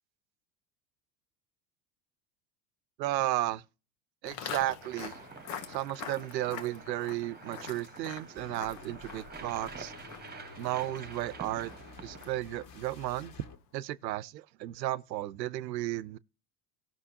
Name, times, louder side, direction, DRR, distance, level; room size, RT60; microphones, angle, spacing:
voice 1, 3.0-3.6 4.2-5.2 5.7-9.9 10.6-11.7 12.0-13.3 13.7-16.2, right 15 dB, 80° right, 0.7 m, -34 dB
Walk footsteps, 4.3-13.5, left 8 dB, 60° left, 1.5 m, -46 dB
sound 1, 4.8-12.4, right 5 dB, 20° right, 1.2 m, -48 dB
sound 2, 8.4-13.6, left 3 dB, 40° left, 2.1 m, -50 dB
18.0 x 6.1 x 2.8 m
hypercardioid pair, 85°, 50 cm